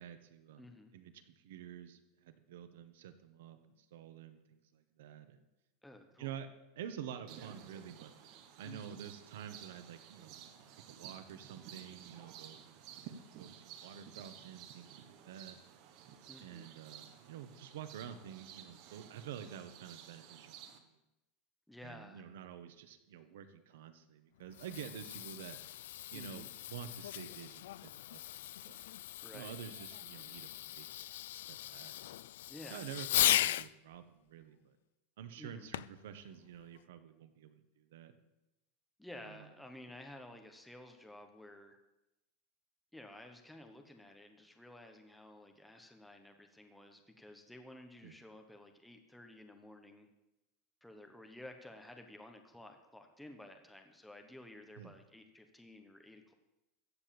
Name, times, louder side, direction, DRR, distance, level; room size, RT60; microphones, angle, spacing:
voice 1, 0.0-3.6 3.9-5.4 6.2-6.5 6.7-8.1 8.6-10.4 10.9-15.6 16.4-21.0 21.8-25.6 26.1-28.7 29.3-31.1 31.3-32.0 32.7-34.8 35.2-38.1 39.2-39.4 48.0-48.1 54.8-54.9, right 9 dB, 85° right, 10 dB, 1.4 m, -49 dB
voice 2, 0.6-0.9 5.8-6.3 8.6-9.0 16.3-16.7 21.7-22.2 26.1-26.5 29.2-29.6 32.5-32.9 35.3-35.7 39.0-41.8 42.9-50.1 50.8-56.3, left 1 dB, ahead, 4 dB, 1.0 m, -53 dB
sound 1, 7.3-20.8, right 9 dB, 40° right, 1.2 m, -54 dB
Fireworks, 24.4-33.7 35.7-36.1 36.8-36.9, left 14 dB, 85° left, 0.3 m, -37 dB
14.5 x 8.0 x 7.0 m, 0.94 s
supercardioid pair, 180°, 0 cm